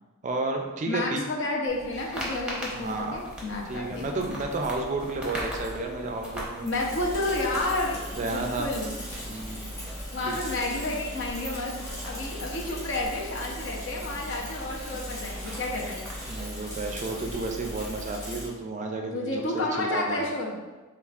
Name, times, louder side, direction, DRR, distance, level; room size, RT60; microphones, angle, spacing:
voice 1, 0.2-1.2 2.7-3.3 3.7-6.7 8.2-8.7 9.2-9.7 10.3-10.4 16.3-20.3, right 2 dB, 35° right, 3 dB, 0.4 m, -32 dB
voice 2, 0.9-4.4 6.6-8.9 10.1-11.8 12.0-16.1 19.1-20.6, left 2 dB, 60° left, -2 dB, 0.7 m, -31 dB
sound 1, 1.7-18.1, equal, 5° right, 0.7 m, -41 dB
Bicycle / Mechanisms, 6.7-18.5, equal, 15° left, 1.2 m, -38 dB
6.8 x 2.4 x 2.4 m, 1.2 s
head